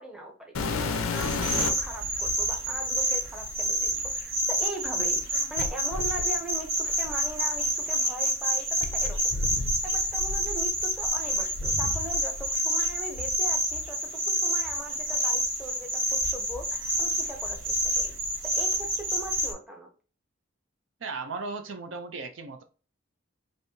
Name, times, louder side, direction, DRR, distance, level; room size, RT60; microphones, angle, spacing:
voice 1, 0.0-9.5 9.8-18.1 18.4-19.9, right 2 dB, 5° right, 0.7 m, -40 dB
sound 1, 0.5-1.9 2.8-2.9 5.6-7.6 8.8-12.5 12.8-13.9 14.6-14.8 15.4-15.5 16.2-17.3 17.5-18.0 19.4-19.5, left 3 dB, 85° left, 0.5 m, -34 dB
sound 2, 1.1-19.5, equal, 85° right, 1.7 m, -28 dB
voice 2, 21.0-22.6, right 4 dB, 65° right, 0.6 m, -36 dB
5.3 x 2.6 x 2.7 m
head